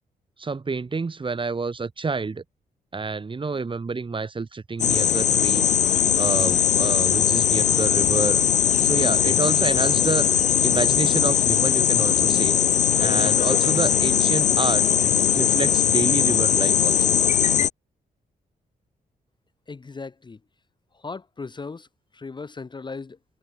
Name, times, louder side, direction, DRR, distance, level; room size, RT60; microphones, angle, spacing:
voice 1, 0.4-2.4 2.9-8.4 8.8-12.6 13.0-14.9 15.3-17.0, right 4 dB, 30° right, 1.6 m, -28 dB
sound 1, 4.8-17.7, left 9 dB, 50° left, 0.4 m, -20 dB
voice 2, 19.7-20.4 20.9-21.9 22.1-23.2, left 4 dB, 30° left, 0.9 m, -37 dB
cardioid pair, 85°, 16 cm